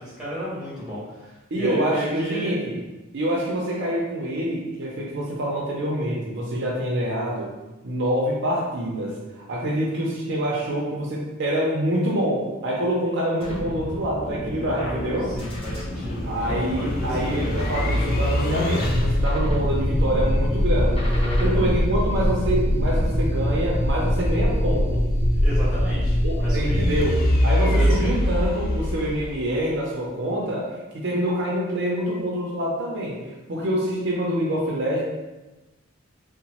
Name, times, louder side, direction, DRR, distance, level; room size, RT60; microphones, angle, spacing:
voice 1, 0.0-2.6 15.3-17.6 21.1-21.6 25.3-26.9 27.4-28.1, left 1 dB, 5° right, -9 dB, 1.1 m, -33 dB
voice 2, 1.5-2.8 3.1-7.5 7.8-9.2 9.5-15.3 16.2-21.1 21.4-25.1 26.2-30.7 30.9-33.2 33.5-35.0, right 1 dB, 60° right, -3 dB, 0.5 m, -26 dB
sound 1, 13.4-23.6, left 1 dB, 30° left, 0.7 m, -32 dB
sound 2, 13.8-29.7, equal, 50° left, 0.3 m, -23 dB
2.9 x 2.0 x 2.9 m, 1.1 s
head